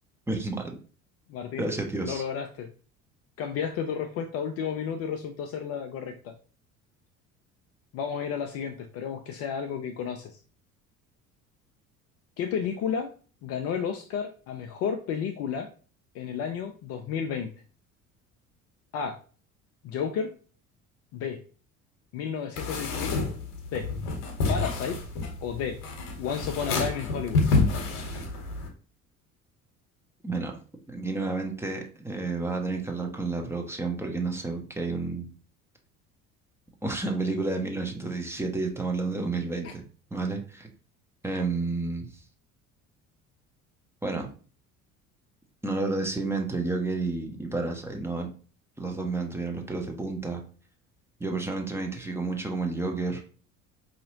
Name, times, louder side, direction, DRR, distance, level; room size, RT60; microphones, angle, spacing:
voice 1, 0.3-0.6 1.6-2.2 30.2-30.5 30.9-35.3 36.8-39.8 40.1-40.7 41.2-42.1 44.0-44.3 45.6-48.3 48.8-50.4 51.2-53.3, right 3 dB, 5° right, 2 dB, 0.7 m, -30 dB
voice 2, 1.3-1.7 2.0-2.7 3.4-6.3 7.9-10.4 12.4-13.1 13.4-15.7 16.1-17.5 18.9-19.2 19.8-20.3 21.1-21.4 22.1-23.2 23.7-23.9 24.5-25.0 25.4-25.8 26.2-27.4 39.6-39.7, left 7 dB, 35° left, 6 dB, 0.4 m, -32 dB
sound 1, 22.6-28.7, left 3 dB, 60° left, 0.9 m, -28 dB
4.8 x 2.8 x 2.6 m, 0.39 s
figure-of-eight pair, 55°, 43 cm